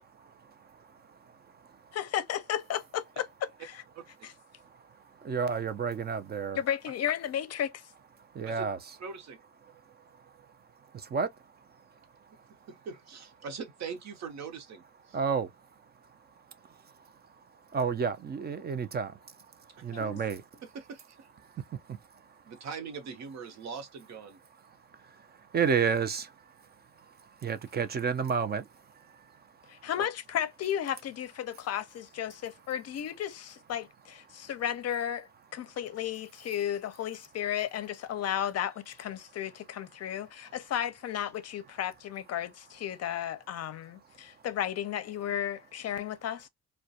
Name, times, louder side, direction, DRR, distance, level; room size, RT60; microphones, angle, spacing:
voice 1, 0.5-2.0 4.5-6.6 8.2-9.0 9.7-12.7 15.1-20.6 21.4-22.5 24.7-29.9 34.3-34.5 35.6-35.8 40.1-40.6 44.2-44.4, right 6 dB, 35° right, 0.4 m, -34 dB
voice 2, 1.9-3.3 3.6-3.7 4.2-4.3 6.6-7.8 19.9-20.2 29.7-46.5, left 10 dB, 55° left, 0.5 m, -34 dB
voice 3, 4.0-4.3 8.4-8.7 9.0-9.4 12.5-15.2 19.8-19.9 20.7-21.3 22.5-24.4 29.8-30.1, right 5 dB, 60° right, 0.8 m, -42 dB
2.3 x 2.2 x 2.6 m
cardioid pair, 90°, 30 cm